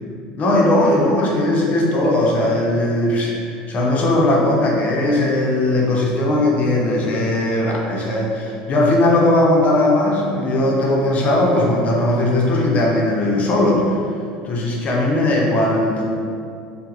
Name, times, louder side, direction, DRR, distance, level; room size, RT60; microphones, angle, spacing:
voice 1, 0.4-14.0 14.4-16.0, left 1 dB, 40° left, -2 dB, 0.5 m, -18 dB
2.3 x 2.0 x 2.8 m, 2.3 s
hypercardioid pair, 85°, 4 cm